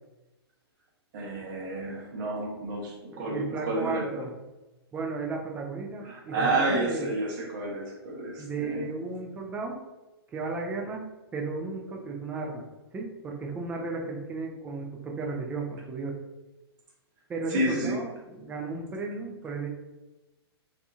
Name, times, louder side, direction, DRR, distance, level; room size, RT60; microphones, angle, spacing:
voice 1, 1.1-4.2 6.0-8.8 17.5-18.0, right 2 dB, 50° right, -1 dB, 0.9 m, -30 dB
voice 2, 3.1-4.3 4.9-7.1 8.4-9.8 10.3-11.0 11.3-12.6 12.9-16.2 17.3-19.7, right 3 dB, 10° right, 0 dB, 0.4 m, -34 dB
2.7 x 2.5 x 2.3 m, 1.1 s
hypercardioid pair, 125°, 14 cm